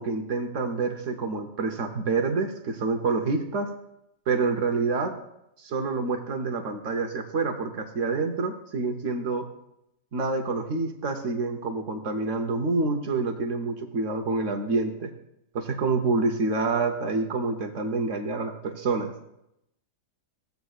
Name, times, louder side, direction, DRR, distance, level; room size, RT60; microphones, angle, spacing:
voice 1, 0.0-3.7 4.3-5.1 5.6-9.5 10.1-15.1 15.5-19.1, right 3 dB, 60° right, 5 dB, 1.0 m, -27 dB
14.5 x 8.1 x 2.4 m, 0.82 s
omnidirectional pair, 1.7 m